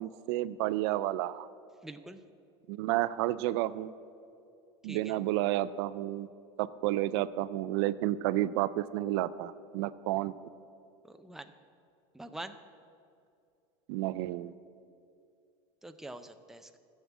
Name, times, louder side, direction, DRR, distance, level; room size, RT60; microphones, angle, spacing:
voice 1, 0.0-1.5 2.7-3.9 4.8-6.3 6.6-10.3 13.9-14.5, right 15 dB, 70° right, 16 dB, 0.4 m, -31 dB
voice 2, 1.8-2.2 4.9-5.1 11.0-11.5 12.1-12.6 15.8-16.8, right 2 dB, 5° right, 8 dB, 0.5 m, -45 dB
13.0 x 7.4 x 7.2 m, 2.4 s
supercardioid pair, 130°, 14 cm